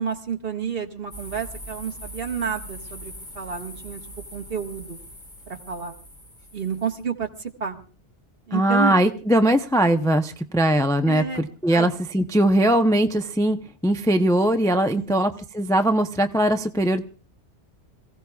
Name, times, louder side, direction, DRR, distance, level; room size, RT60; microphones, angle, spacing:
voice 1, 0.0-4.0 4.3-5.0 5.5-6.0 6.5-7.8 8.5-9.0 11.1-11.5 11.7-11.9 14.9-15.2, right 6 dB, 55° right, 2 dB, 1.8 m, -30 dB
sound 1, 1.1-7.0, equal, 40° left, 3.6 m, -41 dB
voice 2, 8.5-13.6 13.8-17.0, right 1 dB, 5° left, 7 dB, 0.5 m, -20 dB
27.0 x 16.5 x 2.3 m, 0.39 s
omnidirectional pair, 1.1 m